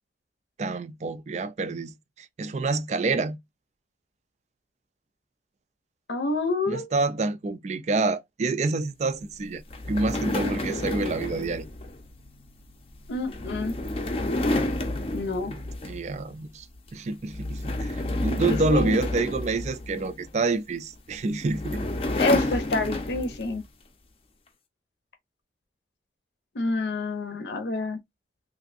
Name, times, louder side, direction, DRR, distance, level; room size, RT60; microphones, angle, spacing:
voice 1, 0.6-3.4 6.7-9.6 9.9-11.7 15.5-16.7 16.9-21.8, right 3 dB, 40° right, 0.3 m, -28 dB
voice 2, 6.1-6.9 13.1-13.7 15.1-15.5 18.5-19.0 22.1-23.6 26.5-28.0, left 2 dB, 80° left, 0.7 m, -28 dB
sound 1, 9.7-16.2 16.6-16.9 17.3-20.3 21.1-23.6, left 1 dB, 35° left, 0.5 m, -30 dB
3.3 x 2.6 x 2.5 m
head